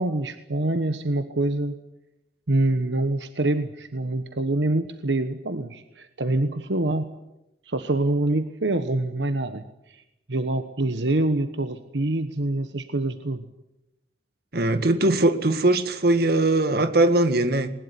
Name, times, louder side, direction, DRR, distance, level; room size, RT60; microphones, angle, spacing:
voice 1, 0.0-1.8 2.5-7.1 7.6-9.6 9.9-10.0 10.3-13.4, right 2 dB, 80° right, 9 dB, 1.3 m, -25 dB
voice 2, 14.5-17.7, right 2 dB, 60° right, 10 dB, 1.9 m, -20 dB
21.0 x 20.0 x 9.9 m, 0.89 s
head